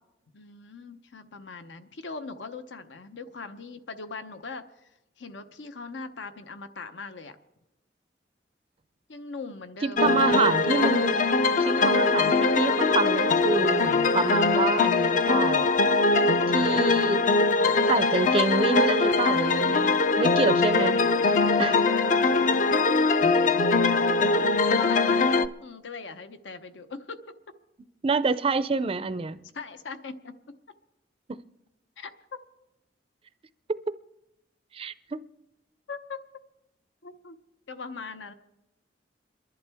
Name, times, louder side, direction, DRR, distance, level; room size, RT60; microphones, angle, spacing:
voice 1, 0.3-4.9 5.2-7.4 9.1-10.3 16.1-16.5 24.7-25.3 25.6-27.2 29.5-30.3 32.0-32.4 35.9-36.2 37.0-37.4 37.7-38.3, left 4 dB, 80° left, 0.8 m, -40 dB
voice 2, 9.8-11.2 11.6-15.7 16.5-17.2 17.9-21.0 21.6-21.8 28.0-29.4 34.7-35.2, right 4 dB, 30° right, 0.4 m, -27 dB
sound 1, 10.0-25.5, left 3 dB, 45° left, 0.5 m, -22 dB
28.5 x 11.0 x 3.5 m
head